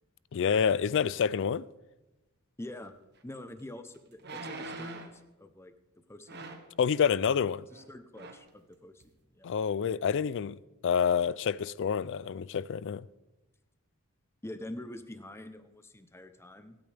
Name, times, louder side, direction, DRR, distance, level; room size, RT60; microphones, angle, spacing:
voice 1, 0.3-1.6 6.8-7.7 9.4-10.6 10.8-13.1, left 7 dB, 60° left, 0.4 m, -28 dB
voice 2, 2.6-2.9 3.2-5.7 6.1-6.6 7.7-9.6 14.4-16.8, left 1 dB, 10° left, 0.7 m, -45 dB
sound 1, 3.2-3.3 4.2-5.2 6.3-6.7 7.7-7.9 8.1-8.5 9.0-9.1, right 2 dB, 50° right, 1.3 m, -42 dB
25.0 x 8.8 x 3.4 m
head